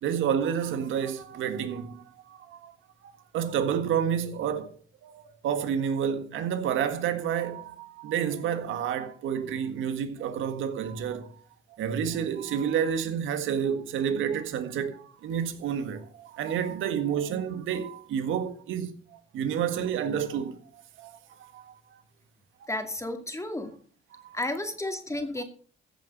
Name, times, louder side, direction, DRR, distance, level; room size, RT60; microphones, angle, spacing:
voice 1, 0.0-2.7 3.0-11.4 11.8-21.8 24.1-24.4, right 8 dB, 85° right, 1.6 m, -30 dB
voice 2, 22.7-23.7 24.3-25.4, left 1 dB, 15° left, 2.3 m, -32 dB
15.0 x 7.5 x 5.3 m
cardioid pair, 90°, 20 cm